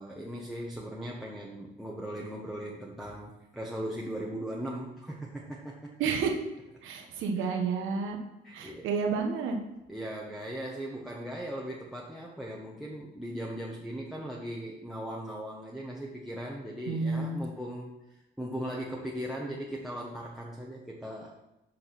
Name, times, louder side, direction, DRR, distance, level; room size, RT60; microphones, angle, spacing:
voice 1, 0.0-5.9 7.4-7.5 8.4-8.9 9.9-21.4, equal, ahead, -2 dB, 1.2 m, -38 dB
voice 2, 6.0-6.4 6.8-8.2 8.5-9.6 16.9-17.4, right 5 dB, 90° right, 3 dB, 1.3 m, -30 dB
7.7 x 5.3 x 5.9 m, 0.97 s
cardioid pair, 90°, 20 cm